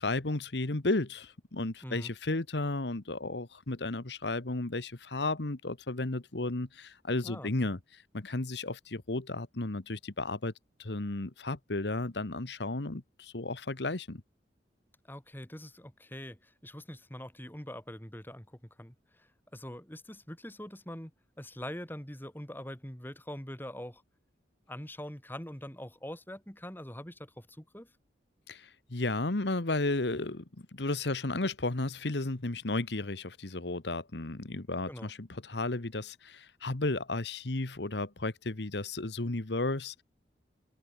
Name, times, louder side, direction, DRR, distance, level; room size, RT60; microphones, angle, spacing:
voice 1, 0.0-7.8 8.1-10.5 10.8-14.2 28.5-40.0, left 2 dB, 75° left, 1.4 m, -33 dB
voice 2, 1.8-2.1 7.2-7.5 15.1-21.1 21.4-24.0 24.7-27.9 34.9-35.1, equal, 10° left, 3.9 m, -43 dB
head